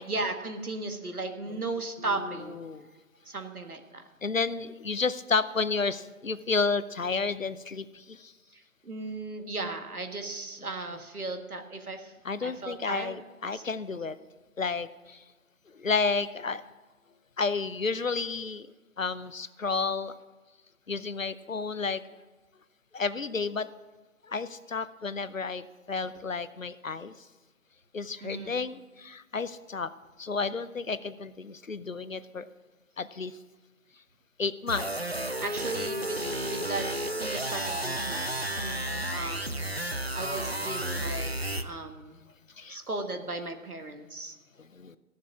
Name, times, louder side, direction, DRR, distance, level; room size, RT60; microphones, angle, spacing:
voice 1, 0.1-2.6 3.3-4.0 8.5-13.2 13.5-13.6 28.2-28.6 35.4-36.9 37.2-38.6 39.1-39.8 40.1-42.2 42.7-44.4, right 2 dB, 80° right, 6 dB, 1.8 m, -36 dB
voice 2, 2.1-2.9 4.2-8.3 12.2-14.2 14.6-15.2 15.7-16.6 17.4-18.7 19.0-20.1 20.9-22.0 22.9-23.7 24.3-27.1 27.9-29.9 30.2-32.5 33.0-33.3 34.4-35.2 38.6-39.1 42.6-42.8 44.6-45.0, left 4 dB, 60° left, 14 dB, 0.7 m, -31 dB
sound 1, 34.7-41.6, right 1 dB, 45° right, 0.5 m, -32 dB
15.0 x 7.4 x 6.0 m, 1.2 s
figure-of-eight pair, 175°, 44 cm